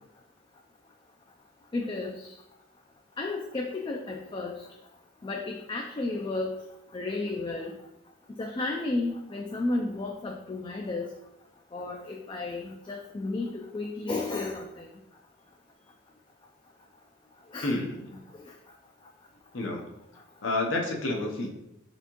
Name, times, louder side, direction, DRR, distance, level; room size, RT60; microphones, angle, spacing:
voice 1, 1.7-2.2 3.2-4.5 5.2-6.5 6.9-7.7 8.4-11.1 11.7-14.9 17.5-17.7 18.1-18.2, left 2 dB, 25° left, 1 dB, 0.3 m, -32 dB
voice 2, 17.6-18.0 19.5-19.9 20.4-21.5, left 2 dB, 90° left, 2 dB, 0.8 m, -29 dB
4.2 x 3.5 x 2.9 m, 0.86 s
head